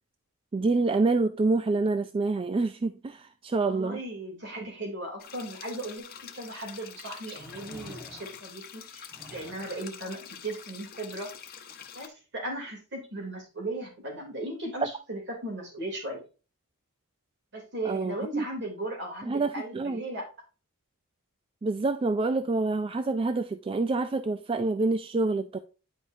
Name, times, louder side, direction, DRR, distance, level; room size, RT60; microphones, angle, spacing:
voice 1, 0.5-4.0 17.8-18.4 19.2-20.0 21.6-25.6, right 3 dB, 25° right, 0.3 m, -27 dB
voice 2, 3.6-6.1 6.3-11.3 11.9-16.2 17.5-20.2, right 1 dB, 55° right, 3.0 m, -37 dB
sound 1, 5.2-12.1, left 8 dB, 45° left, 0.9 m, -46 dB
sound 2, 6.0-6.1 7.3-8.5 9.1-9.8 11.7-11.8, equal, ahead, 1.2 m, -48 dB
9.7 x 5.2 x 2.7 m
head